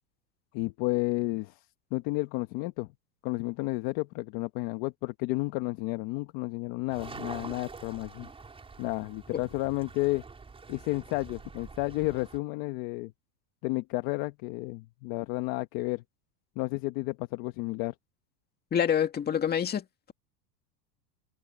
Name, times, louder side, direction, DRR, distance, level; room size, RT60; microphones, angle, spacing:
voice 1, 0.5-1.6 1.9-2.9 3.2-8.3 8.8-10.2 10.7-13.1 13.6-16.0 16.6-17.9, left 21 dB, 45° left, 1.1 m, -31 dB
sound 1, 6.9-12.4, right 4 dB, 10° right, 4.4 m, -46 dB
voice 2, 18.7-20.1, left 8 dB, 20° left, 2.2 m, -27 dB
supercardioid pair, 155°, 49 cm